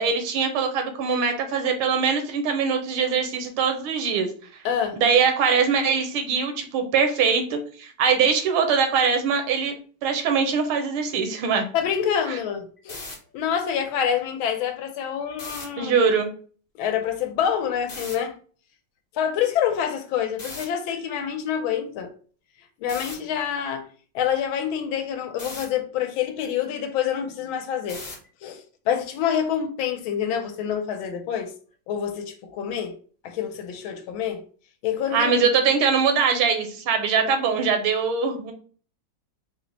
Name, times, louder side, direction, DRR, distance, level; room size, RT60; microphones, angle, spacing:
voice 1, 0.0-4.3 4.9-9.8 10.0-11.7 15.8-16.3 35.1-38.5, right 5 dB, 85° right, 1.6 m, -22 dB
voice 2, 4.6-5.0 11.7-13.0 13.3-16.0 16.8-18.4 19.1-22.1 22.8-23.9 24.1-28.0 28.4-31.5 31.9-32.9 33.2-34.4 34.8-35.4, left 8 dB, 75° left, 1.4 m, -27 dB
sound 1, 12.8-13.1 15.3-15.6 17.9-18.1 20.4-20.6 22.9-23.1 25.4-25.7 27.9-28.3, left 2 dB, 30° left, 0.8 m, -36 dB
4.5 x 2.1 x 3.9 m
omnidirectional pair, 2.3 m